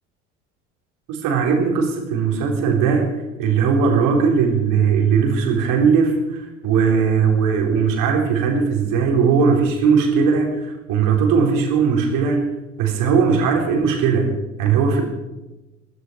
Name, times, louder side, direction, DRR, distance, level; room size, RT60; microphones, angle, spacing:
voice 1, 1.1-3.1 3.4-12.4 12.8-15.0, right 6 dB, 55° right, 1 dB, 4.2 m, -18 dB
22.0 x 13.0 x 4.7 m, 1.0 s
figure-of-eight pair, 65°, 38 cm